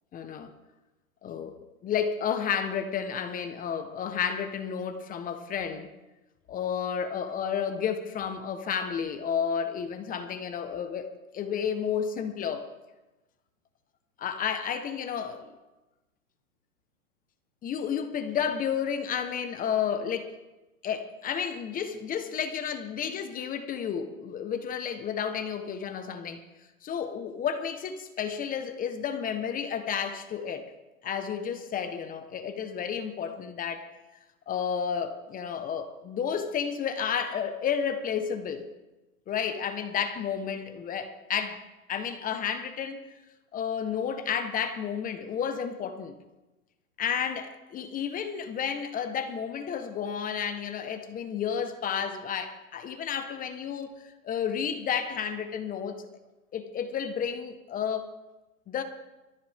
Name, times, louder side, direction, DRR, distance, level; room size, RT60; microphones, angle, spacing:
voice 1, 0.1-0.5 1.2-5.9 6.5-12.7 14.2-15.5 17.6-20.3 20.8-26.4 26.8-30.6 31.0-33.9 34.5-38.6 39.3-41.6 41.9-43.1 43.5-46.2 47.0-56.1 56.5-58.1 58.7-58.8, left 7 dB, 20° left, 1.3 m, -31 dB
22.0 x 14.0 x 3.7 m
hypercardioid pair, 130°, 43 cm